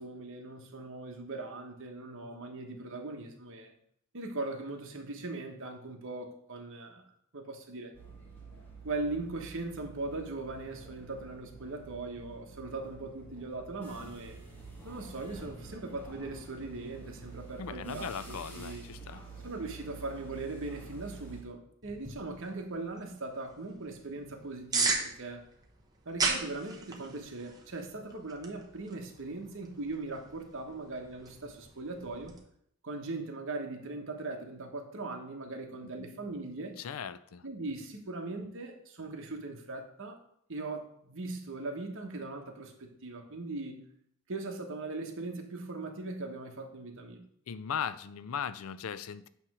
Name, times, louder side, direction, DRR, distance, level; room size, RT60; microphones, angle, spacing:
voice 1, 0.0-3.7 4.1-7.0 7.3-7.9 8.8-14.4 14.8-18.9 19.4-25.4 26.0-32.3 32.8-36.8 37.4-40.2 40.5-43.8 44.3-47.2, right 2 dB, 60° right, 3 dB, 1.2 m, -40 dB
sound 1, 7.9-21.4, right 4 dB, 10° left, 1.6 m, -49 dB
voice 2, 17.6-19.2 36.8-37.4 47.5-49.3, left 7 dB, 65° left, 15 dB, 0.4 m, -38 dB
sound 2, 21.8-32.4, right 3 dB, 15° right, 0.9 m, -38 dB
8.6 x 3.2 x 6.1 m, 0.68 s
head